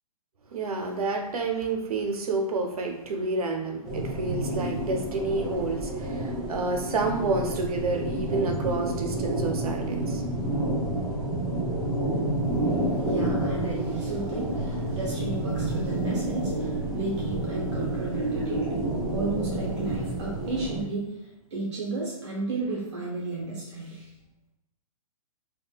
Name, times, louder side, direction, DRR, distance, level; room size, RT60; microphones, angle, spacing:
voice 1, 0.5-10.4, right 3 dB, 85° right, 4 dB, 0.6 m, -29 dB
sound 1, 3.8-20.8, right 1 dB, 5° right, 0.4 m, -29 dB
voice 2, 13.0-18.8 19.1-24.1, right 3 dB, 50° right, -4 dB, 0.9 m, -33 dB
3.6 x 2.2 x 2.3 m, 0.88 s
hypercardioid pair, 155°, 19 cm